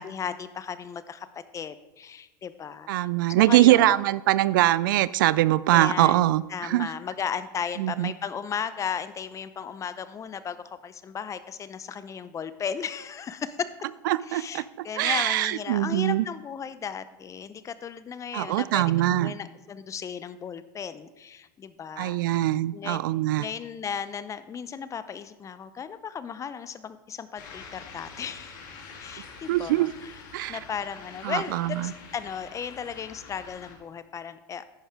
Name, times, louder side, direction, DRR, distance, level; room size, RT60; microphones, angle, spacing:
voice 1, 0.0-3.1 3.4-4.0 5.7-13.7 14.2-23.0 23.4-28.5 29.0-30.2 30.5-34.7, left 7 dB, 30° left, 13 dB, 0.7 m, -35 dB
voice 2, 2.9-6.9 7.8-8.1 14.1-14.6 15.0-16.3 18.3-19.3 22.0-23.4 29.5-29.9 30.3-30.6 31.2-31.9, right 15 dB, 75° right, 18 dB, 0.4 m, -22 dB
sound 1, 27.4-33.8, left 5 dB, 70° left, 2.2 m, -46 dB
10.5 x 10.0 x 3.7 m, 1.1 s
hypercardioid pair, 90°, 11 cm